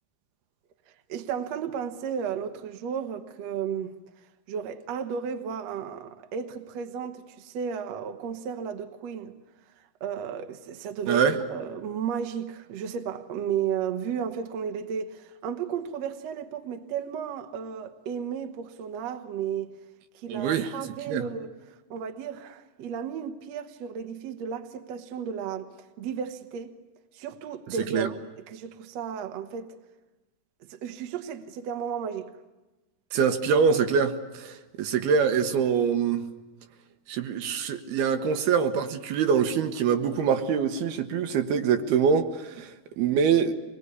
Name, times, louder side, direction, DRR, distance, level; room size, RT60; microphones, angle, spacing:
voice 1, 1.1-3.9 4.5-9.4 10.0-11.2 11.5-19.7 20.1-21.5 21.9-25.7 26.0-26.7 27.1-29.8 30.7-32.3, right 7 dB, 60° right, 1.8 m, -33 dB
voice 2, 20.3-20.7 21.1-21.2 27.9-28.1 33.1-36.3 37.1-43.5, right 6 dB, 75° right, 3.0 m, -24 dB
24.5 x 20.5 x 9.6 m
omnidirectional pair, 4.6 m